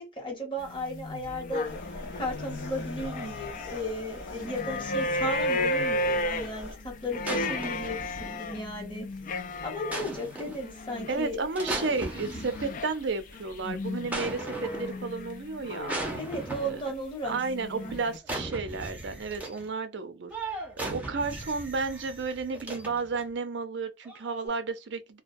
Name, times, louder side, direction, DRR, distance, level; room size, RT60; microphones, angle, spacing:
voice 1, 0.0-1.7 2.1-9.1 9.6-11.4 16.2-17.9, equal, 25° left, 1.1 m, -35 dB
sound 1, 0.6-3.8 4.1-16.8 17.3-18.2, left 1 dB, 45° left, 0.4 m, -34 dB
sound 2, 1.6-6.8, left 2 dB, 80° left, 1.0 m, -42 dB
sound 3, 7.2-8.7 9.9-10.7 11.6-13.0 14.1-15.1 15.9-16.9 18.2-19.7 20.3-23.2 24.0-24.5, right 2 dB, 10° right, 0.6 m, -37 dB
voice 2, 11.1-16.0 16.6-16.8 17.2-25.2, right 4 dB, 65° right, 0.5 m, -32 dB
2.2 x 2.1 x 2.5 m
head